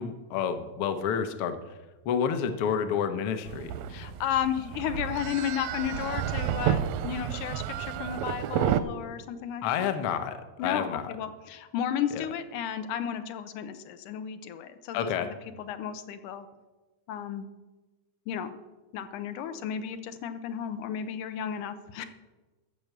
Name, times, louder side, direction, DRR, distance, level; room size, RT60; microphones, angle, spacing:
voice 1, 0.0-1.6 2.0-3.7 9.6-10.4 10.6-11.0 12.1-12.3 14.9-15.3, left 7 dB, 65° left, 9 dB, 1.4 m, -29 dB
sound 1, 3.5-8.8, right 10 dB, 80° right, 1.6 m, -31 dB
voice 2, 3.9-9.9 10.6-16.5 17.1-17.5 18.3-18.5 18.9-22.1, left 9 dB, 85° left, 10 dB, 2.4 m, -33 dB
13.5 x 6.1 x 7.9 m, 1.2 s
omnidirectional pair, 3.5 m